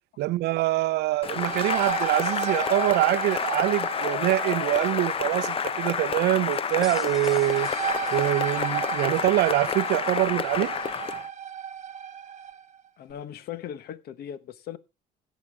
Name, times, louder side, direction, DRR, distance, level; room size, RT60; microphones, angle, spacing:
voice 1, 0.2-7.7 8.1-10.7, right 16 dB, 75° right, 0.5 m, -25 dB
sound 1, 1.1-12.6, right 8 dB, 45° right, 1.0 m, -34 dB
Cheering / Applause, 1.2-11.3, left 7 dB, 35° left, 0.6 m, -29 dB
sound 2, 6.5-9.1, right 1 dB, ahead, 2.3 m, -46 dB
voice 2, 13.0-14.8, left 10 dB, 65° left, 1.1 m, -38 dB
17.0 x 7.4 x 3.5 m
cardioid pair, 110°, 17 cm